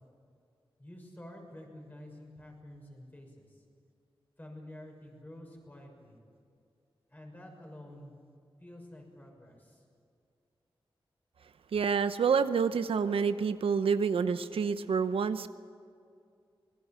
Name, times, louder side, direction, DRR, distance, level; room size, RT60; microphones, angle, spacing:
voice 1, 0.8-3.6 4.4-6.2 7.1-8.1 8.6-9.8, left 1 dB, 20° left, 1 dB, 6.4 m, -49 dB
voice 2, 11.7-15.5, right 6 dB, 80° right, 11 dB, 0.8 m, -28 dB
25.5 x 20.0 x 7.6 m, 2.4 s
wide cardioid pair, 100°, 9 cm